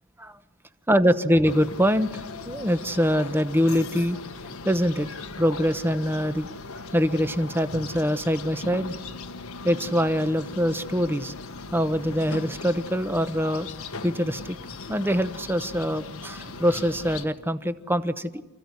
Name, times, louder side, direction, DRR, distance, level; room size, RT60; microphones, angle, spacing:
voice 1, 0.9-4.2 4.6-5.1 5.4-6.5 6.9-8.9 9.6-11.3 11.7-13.7 14.0-14.6 14.9-18.4, equal, 10° right, 11 dB, 1.0 m, -24 dB
sound 1, 1.4-17.3, left 3 dB, 80° left, 1.4 m, -39 dB
29.0 x 15.5 x 9.7 m, 1.1 s
head